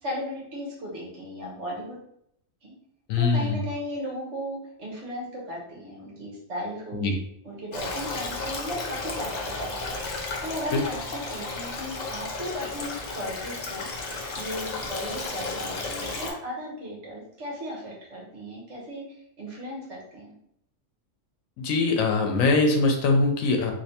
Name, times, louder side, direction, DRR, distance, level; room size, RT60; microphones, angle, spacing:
voice 1, 0.0-2.0 2.6-2.7 3.2-7.1 7.4-9.8 10.4-13.9 14.3-20.3, equal, 60° right, -3 dB, 1.3 m, -36 dB
voice 2, 3.1-3.6 7.0-7.1 10.7-10.8 21.6-23.7, left 3 dB, 80° left, 3 dB, 1.1 m, -22 dB
Stream, 7.7-16.3, left 3 dB, 55° left, 0.5 m, -33 dB
3.2 x 3.0 x 2.8 m, 0.73 s
omnidirectional pair, 1.4 m